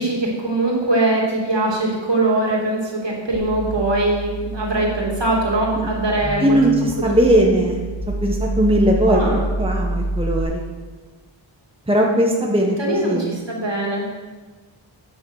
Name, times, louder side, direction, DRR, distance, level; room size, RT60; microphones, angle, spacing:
voice 1, 0.0-6.6 7.0-7.2 9.1-9.5 12.8-14.3, right 2 dB, 60° right, -3 dB, 2.9 m, -22 dB
sound 1, 3.3-10.4, right 1 dB, 55° left, 2.2 m, -27 dB
voice 2, 6.4-7.8 8.2-9.2 9.6-10.6 11.9-13.3, right 1 dB, 10° right, 0 dB, 1.2 m, -18 dB
10.5 x 6.5 x 6.4 m, 1.3 s
wide cardioid pair, 90°, 49 cm